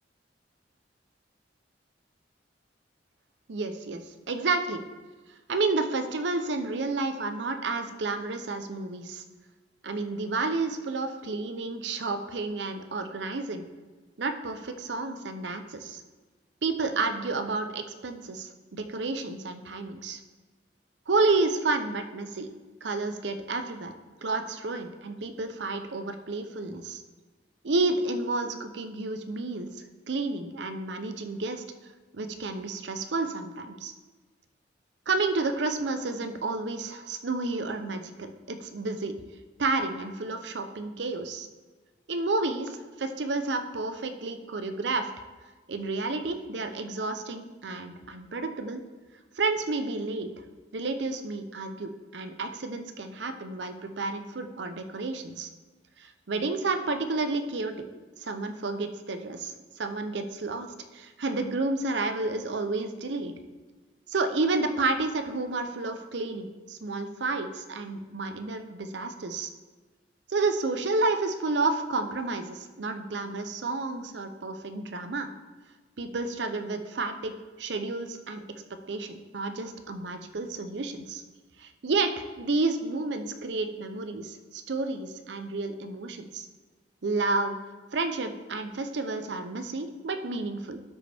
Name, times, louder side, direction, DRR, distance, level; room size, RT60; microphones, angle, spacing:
voice 1, 3.5-4.8 5.5-9.2 9.8-13.6 14.2-16.0 16.6-20.2 21.1-22.5 22.8-23.9 24.2-27.0 27.6-31.6 32.1-33.9 35.1-39.1 39.6-41.5 42.1-45.1 45.7-48.8 49.4-50.3 50.7-55.5 56.0-57.7 58.2-63.3 64.1-69.5 70.3-75.3 76.0-78.6 78.9-81.2 81.6-86.5 87.0-87.6 87.9-90.8, right 3 dB, 75° right, 8 dB, 0.7 m, -30 dB
12.5 x 5.2 x 3.4 m, 1.3 s
head